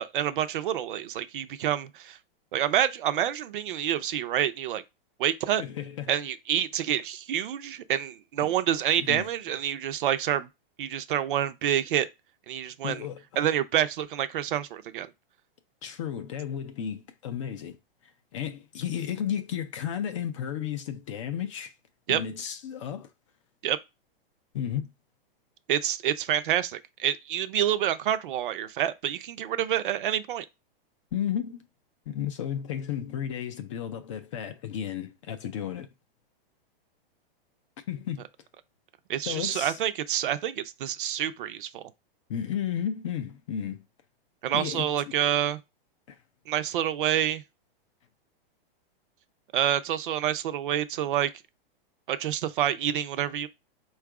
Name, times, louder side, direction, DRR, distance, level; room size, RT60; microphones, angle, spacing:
voice 1, 0.0-2.2 2.5-4.8 5.2-5.6 6.1-10.5 10.8-12.1 12.5-13.0 13.4-15.1 22.1-22.2 23.6-23.8 25.7-30.5 39.1-41.8 44.4-45.6 46.5-47.4 49.5-51.3 52.1-53.5, right 11 dB, 60° right, 0.5 m, -27 dB
voice 2, 5.6-6.1 8.4-8.5 9.0-9.3 12.8-13.2 15.8-17.8 18.3-21.7 22.1-23.1 24.5-24.9 31.1-31.6 32.1-35.9 37.9-38.2 39.3-39.8 42.3-43.8 44.5-44.9 46.1-46.2, left 9 dB, 35° left, 0.4 m, -33 dB
4.4 x 2.4 x 4.7 m
supercardioid pair, 165°, 30 cm